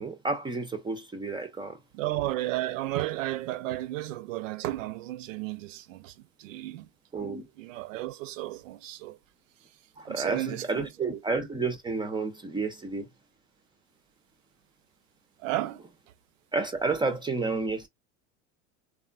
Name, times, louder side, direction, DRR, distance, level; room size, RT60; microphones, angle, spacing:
voice 1, 0.0-1.8 7.1-7.5 10.0-13.1 16.5-17.9, right 3 dB, 15° right, 0.3 m, -31 dB
voice 2, 1.9-6.1 6.4-6.9 7.2-7.3 7.6-9.2 10.0-10.9 15.4-15.8, right 16 dB, 90° right, 0.5 m, -33 dB
3.1 x 2.2 x 2.2 m
supercardioid pair, 110°, 38 cm